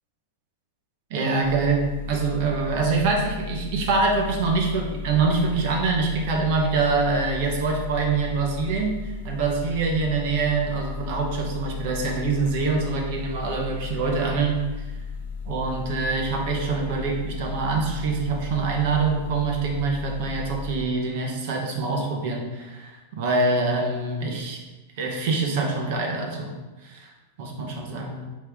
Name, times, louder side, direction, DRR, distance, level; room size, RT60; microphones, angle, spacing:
voice 1, 1.1-1.8 2.1-14.6 15.5-24.6 25.0-26.5 26.8-27.1 27.4-28.2, right 4 dB, 50° right, 1 dB, 1.2 m, -25 dB
sound 1, 1.4-20.8, left 5 dB, 65° left, 0.7 m, -35 dB
9.3 x 3.2 x 3.6 m, 1.2 s
supercardioid pair, 165°, 0 cm